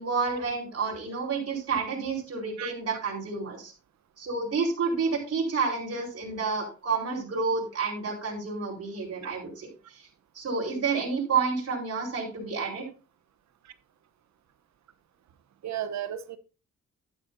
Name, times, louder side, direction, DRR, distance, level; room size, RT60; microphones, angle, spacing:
voice 1, 0.0-3.7 4.2-10.1 10.3-12.8, right 4 dB, 55° right, 4.6 m, -30 dB
voice 2, 15.6-16.4, right 10 dB, 70° right, 1.0 m, -34 dB
11.5 x 10.0 x 2.7 m
cardioid pair, 105°, 29 cm